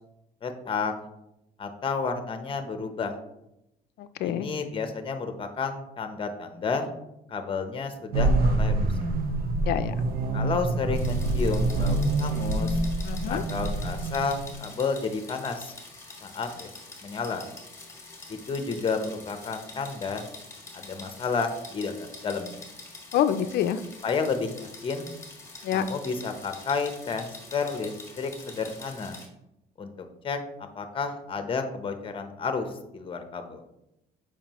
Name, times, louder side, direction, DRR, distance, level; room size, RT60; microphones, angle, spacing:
voice 1, 0.4-0.9 1.6-3.1 4.2-6.9 7.3-8.9 10.3-12.8 13.3-15.7 16.2-16.7 17.0-17.5 18.3-20.3 20.7-22.6 24.0-25.1 25.7-29.2 29.8-30.4 30.7-33.6, left 5 dB, 30° left, 7 dB, 0.8 m, -31 dB
voice 2, 4.0-4.5 9.6-9.9 13.0-13.4 23.1-23.8 25.6-25.9, left 10 dB, 70° left, 11 dB, 0.5 m, -26 dB
sound 1, 8.1-14.6, right 2 dB, 65° right, 0.8 m, -26 dB
sound 2, 10.9-29.3, left 3 dB, 15° left, 1.5 m, -45 dB
7.3 x 4.9 x 3.0 m, 0.86 s
cardioid pair, 110°, 17 cm